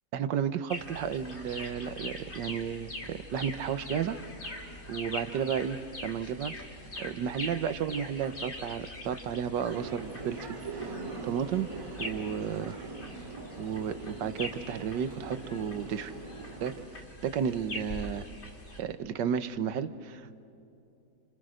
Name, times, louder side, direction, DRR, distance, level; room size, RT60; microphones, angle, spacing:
voice 1, 0.1-4.2 4.9-6.5 7.0-11.0 11.2-11.7 12.0-12.8 13.6-16.1 16.6-18.3 18.8-20.4, right 8 dB, 80° right, 11 dB, 1.6 m, -33 dB
sound 1, 0.7-18.8, left 1 dB, 35° left, 2.8 m, -43 dB
sound 2, 9.7-16.8, right 3 dB, 15° right, 3.2 m, -42 dB
29.0 x 28.5 x 6.4 m, 2.8 s
omnidirectional pair, 1.9 m